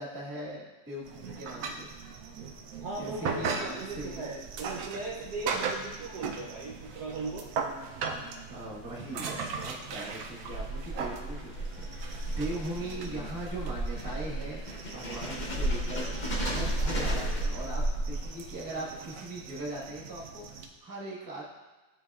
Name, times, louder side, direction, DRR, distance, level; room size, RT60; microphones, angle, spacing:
voice 1, 0.0-2.2 3.0-4.3 5.4-5.6 8.5-21.5, right 1 dB, 10° right, -5 dB, 1.1 m, -40 dB
sound 1, 1.0-20.7, right 5 dB, 85° right, 0.8 m, -39 dB
voice 2, 2.8-7.5, right 3 dB, 60° right, -5 dB, 1.1 m, -38 dB
sound 2, 10.3-18.5, right 1 dB, 50° left, 0.5 m, -33 dB
10.5 x 4.0 x 2.4 m, 1.2 s
omnidirectional pair, 2.2 m